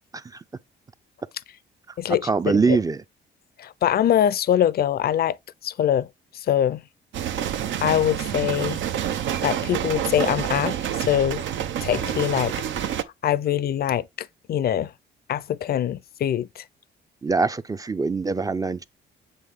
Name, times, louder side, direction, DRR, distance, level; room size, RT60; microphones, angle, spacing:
voice 1, 0.1-0.4 1.9-2.0 2.2-3.0 17.2-18.8, right 4 dB, 20° right, 0.4 m, -23 dB
voice 2, 2.0-2.3 2.7-2.8 3.6-5.4 5.6-6.1 6.3-6.8 7.8-8.8 9.4-11.4 11.8-12.5 12.8-14.9 15.3-16.6, left 10 dB, 50° left, 0.5 m, -23 dB
sound 1, 7.1-13.0, right 9 dB, 75° right, 0.7 m, -28 dB
7.7 x 3.4 x 3.6 m
cardioid pair, 90°, 20 cm